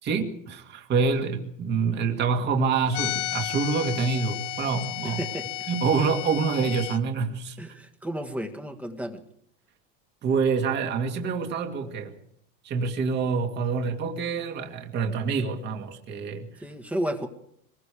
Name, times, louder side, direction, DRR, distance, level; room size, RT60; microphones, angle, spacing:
voice 1, 0.0-5.2 5.7-7.6 10.2-12.1 12.6-16.6, right 5 dB, 25° right, 4 dB, 2.2 m, -26 dB
sound 1, 2.9-7.0, left 16 dB, 70° left, 1.1 m, -33 dB
voice 2, 5.0-5.5 7.6-9.2 16.6-17.3, equal, 5° right, 5 dB, 1.7 m, -32 dB
25.5 x 21.5 x 4.9 m, 0.68 s
supercardioid pair, 170°, 38 cm